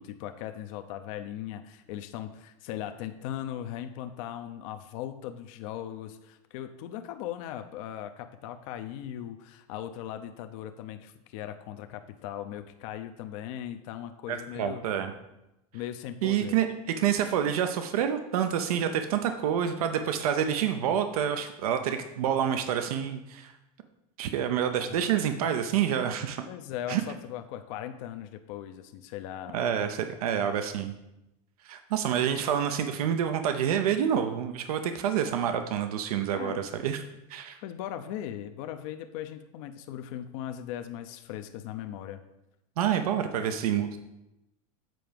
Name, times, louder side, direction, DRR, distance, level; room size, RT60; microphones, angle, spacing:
voice 1, 0.0-14.8 15.7-16.6 24.8-25.0 26.5-29.7 36.3-36.6 37.6-42.2, left 11 dB, 65° left, 8 dB, 0.6 m, -38 dB
voice 2, 14.3-15.1 16.2-23.5 24.2-26.4 26.9-27.0 29.5-30.9 31.6-37.0 37.3-37.6 42.8-44.0, right 9 dB, 90° right, 8 dB, 0.7 m, -28 dB
7.7 x 4.6 x 5.1 m, 0.91 s
supercardioid pair, 135°, 18 cm